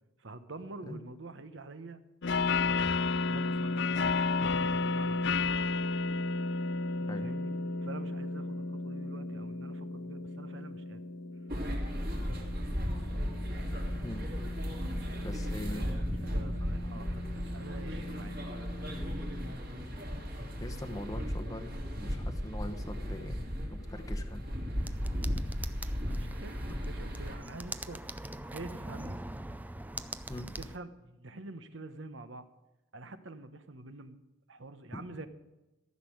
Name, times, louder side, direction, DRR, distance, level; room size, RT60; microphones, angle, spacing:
voice 1, 0.2-3.0 3.3-5.4 7.1-7.5 7.8-11.0 14.9-18.5 26.0-28.0 28.5-29.2 30.6-32.5 32.9-34.2 34.5-35.3, right 2 dB, 65° right, 11 dB, 1.1 m, -47 dB
sound 1, 2.2-19.5, left 3 dB, 60° left, 0.5 m, -34 dB
sound 2, 11.5-27.4, equal, 45° right, 3.2 m, -36 dB
voice 2, 13.9-14.3 15.2-15.8 20.6-24.5 30.3-30.5 34.9-35.0, left 1 dB, 15° left, 4 dB, 0.9 m, -42 dB
sound 3, 24.8-30.8, right 2 dB, 10° right, 0.4 m, -43 dB
14.0 x 6.5 x 9.3 m, 1.0 s
head